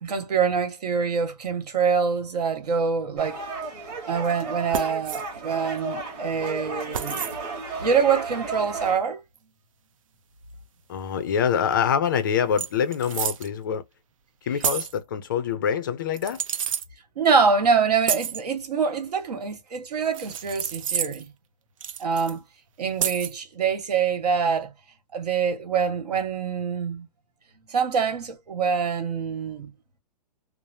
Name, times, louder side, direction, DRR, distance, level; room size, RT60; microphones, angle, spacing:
voice 1, 0.0-3.5 4.1-7.3 7.8-9.2 17.2-21.3 22.0-22.4 22.8-24.7 25.1-27.1 27.7-29.7, right 6 dB, 70° right, 1.5 m, -25 dB
sound 1, 3.2-8.9, right 3 dB, 25° right, 1.3 m, -34 dB
sound 2, 4.7-5.2 6.9-7.4 9.4-9.5 11.7-11.8 12.0-12.2 12.6-13.5 14.6-15.0 16.1-16.9 18.0-18.4 20.1-21.3 21.8-22.3 23.0-23.4, right 8 dB, 55° right, 0.5 m, -29 dB
voice 2, 10.9-13.8 14.5-16.4, left 8 dB, 30° left, 0.5 m, -25 dB
3.2 x 2.0 x 2.6 m
hypercardioid pair, 170°, 21 cm